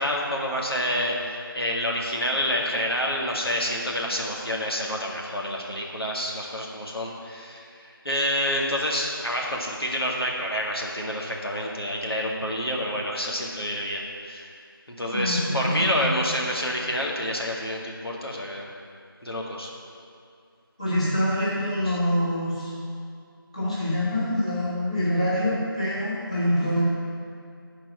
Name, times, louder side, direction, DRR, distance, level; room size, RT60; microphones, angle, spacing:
voice 1, 0.0-14.5 14.9-18.7 19.2-19.7 21.9-22.0, equal, 85° left, -2 dB, 1.8 m, -28 dB
voice 2, 15.1-16.1 20.8-22.7 23.5-26.8, left 1 dB, 15° left, -10 dB, 1.3 m, -25 dB
10.0 x 4.6 x 7.0 m, 2.4 s
figure-of-eight pair, 175°, 12 cm